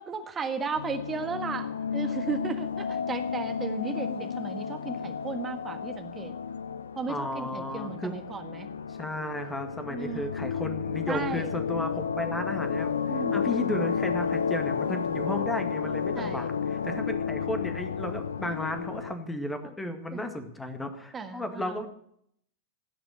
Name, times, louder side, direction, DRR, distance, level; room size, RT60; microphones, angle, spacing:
voice 1, 0.0-6.3 6.9-8.7 9.9-10.3 11.1-11.5 13.1-13.4 16.1-16.5 19.6-19.7 20.1-20.4 21.1-21.8, right 5 dB, 20° right, 7 dB, 1.5 m, -35 dB
sound 1, 0.8-19.1, left 6 dB, 70° left, 0.6 m, -32 dB
voice 2, 7.1-8.1 8.9-12.9 13.3-21.9, left 1 dB, 10° left, 7 dB, 2.0 m, -34 dB
16.5 x 6.0 x 9.6 m, 0.70 s
figure-of-eight pair, 90°, 0 cm